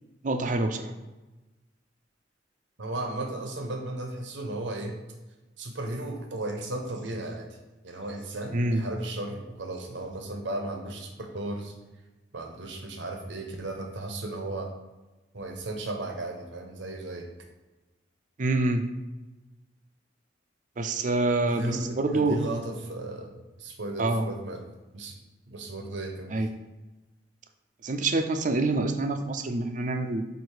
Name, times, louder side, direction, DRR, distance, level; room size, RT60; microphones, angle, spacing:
voice 1, 0.2-0.9 8.5-8.8 18.4-18.8 20.8-22.4 24.0-24.3 26.3-26.5 27.8-30.3, right 2 dB, 45° right, 7 dB, 0.5 m, -26 dB
voice 2, 2.8-5.0 5.6-7.5 7.8-11.7 12.3-14.7 15.3-17.3 21.4-23.3 23.6-24.6 24.9-25.2 25.5-26.3, right 2 dB, 90° right, 2 dB, 1.0 m, -35 dB
7.7 x 2.7 x 4.8 m, 1.1 s
head